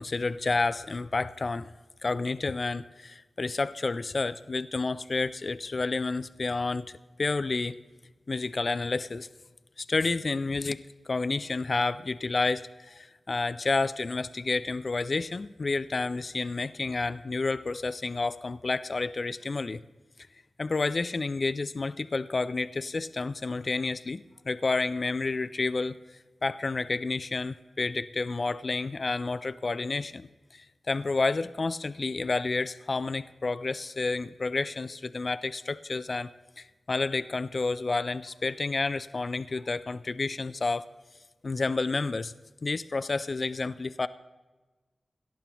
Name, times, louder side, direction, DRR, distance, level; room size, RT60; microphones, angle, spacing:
voice 1, 0.0-1.7 2.0-6.9 7.2-7.8 8.3-9.3 9.8-19.8 20.6-26.0 26.4-36.3 36.6-40.9 41.4-42.3 42.6-44.1, left 3 dB, 55° left, 14 dB, 0.3 m, -30 dB
18.0 x 11.5 x 3.0 m, 1.2 s
cardioid pair, 45°, 0 cm